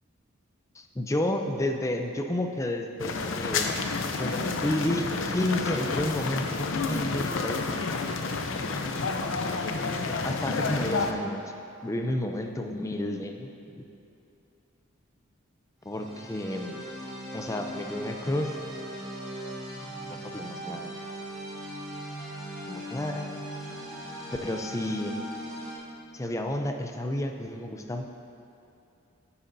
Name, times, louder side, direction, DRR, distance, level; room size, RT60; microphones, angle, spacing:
voice 1, 0.8-3.7 4.2-7.6 8.7-9.1 9.9-11.4 11.8-13.9 15.8-16.8 17.3-18.6 20.1-20.9 22.7-23.3 24.4-25.2 26.1-28.1, left 1 dB, 15° left, 4 dB, 0.4 m, -31 dB
sound 1, 3.0-11.1, left 4 dB, 65° left, 0.6 m, -30 dB
sound 2, 15.8-25.8, equal, ahead, 1.7 m, -39 dB
11.5 x 8.3 x 2.7 m, 2.7 s
head